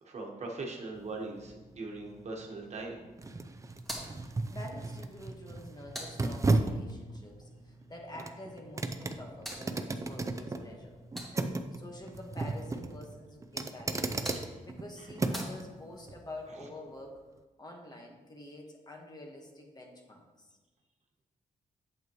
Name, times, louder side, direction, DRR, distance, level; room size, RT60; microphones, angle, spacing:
voice 1, 0.0-3.0 15.0-15.1, right 3 dB, 50° right, 0 dB, 1.4 m, -40 dB
sound 1, 0.9-15.6 16.1-16.2, right 2 dB, 20° right, 0.6 m, -35 dB
sound 2, 3.8-6.8 8.8-11.8 13.7-16.2, equal, ahead, 2.0 m, -48 dB
voice 2, 4.2-11.0 11.7-14.2 14.6-17.2 17.6-20.6, left 1 dB, 30° left, 1 dB, 1.4 m, -47 dB
8.1 x 7.7 x 3.1 m, 1.2 s
cardioid pair, 100°, 14 cm